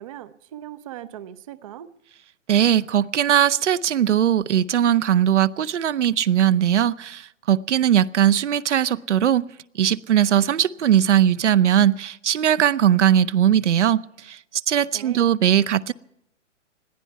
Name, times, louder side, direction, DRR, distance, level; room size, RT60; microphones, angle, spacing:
voice 1, 0.0-1.9 14.9-15.3, right 12 dB, 30° right, 0.5 m, -39 dB
voice 2, 2.5-9.5 9.7-14.4 14.7-15.9, right 10 dB, 70° right, 0.7 m, -19 dB
20.5 x 14.5 x 4.6 m
hypercardioid pair, 135°, 37 cm